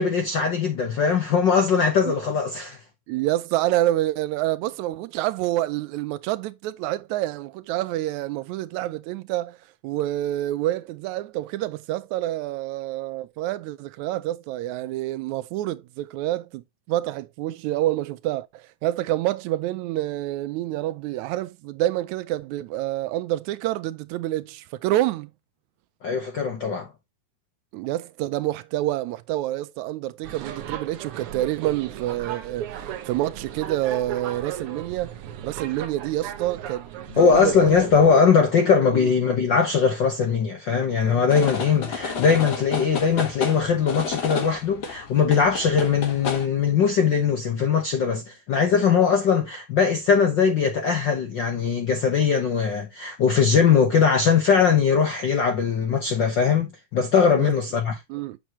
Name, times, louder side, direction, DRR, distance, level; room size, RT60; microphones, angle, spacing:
voice 1, 0.0-2.8 26.0-26.9 37.1-58.0, left 6 dB, 70° left, 1.1 m, -20 dB
voice 2, 3.1-9.6 9.8-25.3 27.7-35.2 35.4-37.8 38.9-39.1 57.3-57.5 58.1-58.4, right 15 dB, 80° right, 1.8 m, -27 dB
sound 1, 30.2-38.1, right 10 dB, 65° right, 1.5 m, -36 dB
sound 2, 41.3-46.4, left 5 dB, 45° left, 1.4 m, -31 dB
7.1 x 7.1 x 2.9 m
omnidirectional pair, 3.4 m